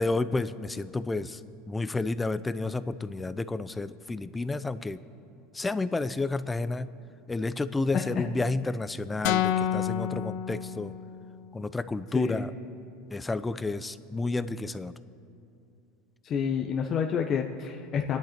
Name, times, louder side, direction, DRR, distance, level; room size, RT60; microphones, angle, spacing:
voice 1, 0.0-1.4 1.7-5.0 5.5-6.9 7.3-10.9 11.5-12.5 13.1-14.9, left 3 dB, 10° left, 14 dB, 0.5 m, -30 dB
voice 2, 7.9-8.2 12.1-12.4 16.2-18.2, left 7 dB, 35° left, 2 dB, 1.0 m, -29 dB
sound 1, 9.2-11.3, left 10 dB, 70° left, 0.7 m, -29 dB
28.0 x 11.0 x 4.4 m, 2.6 s
supercardioid pair, 130°, 0 cm